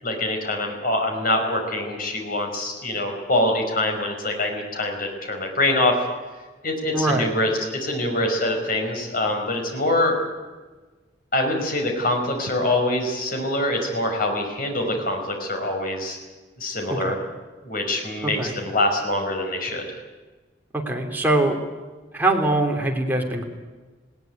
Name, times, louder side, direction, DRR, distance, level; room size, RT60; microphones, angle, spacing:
voice 1, 0.0-5.9 6.6-10.2 11.3-16.2 16.6-17.2 17.6-19.8, left 1 dB, 50° left, 3 dB, 5.4 m, -24 dB
voice 2, 6.9-7.3 17.0-17.1 18.2-18.5 20.7-21.6 22.1-23.4, right 2 dB, 10° right, 0 dB, 3.2 m, -22 dB
20.0 x 18.0 x 9.2 m, 1.3 s
head